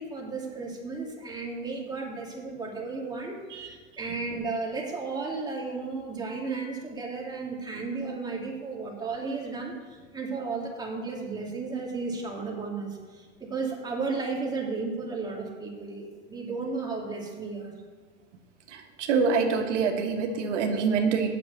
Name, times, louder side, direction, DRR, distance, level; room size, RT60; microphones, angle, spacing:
voice 1, 0.0-17.7, right 4 dB, 10° right, -2 dB, 2.3 m, -34 dB
voice 2, 18.7-21.3, right 5 dB, 90° right, 3 dB, 1.5 m, -26 dB
8.5 x 6.4 x 8.2 m, 1.4 s
supercardioid pair, 130°, 35 cm